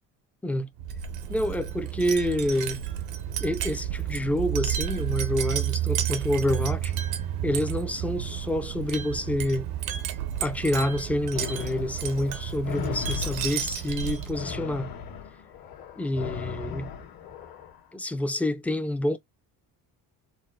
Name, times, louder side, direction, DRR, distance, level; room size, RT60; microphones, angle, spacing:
Wind chime, 0.8-14.5, right 11 dB, 85° right, 0.8 m, -31 dB
voice 1, 1.3-2.8 3.4-6.9 7.4-9.7 10.4-14.9 16.0-16.9 17.9-19.2, left 1 dB, 5° left, 0.3 m, -28 dB
sound 1, 11.3-17.8, left 6 dB, 65° left, 1.5 m, -37 dB
4.1 x 2.1 x 2.3 m
cardioid pair, 110°, 37 cm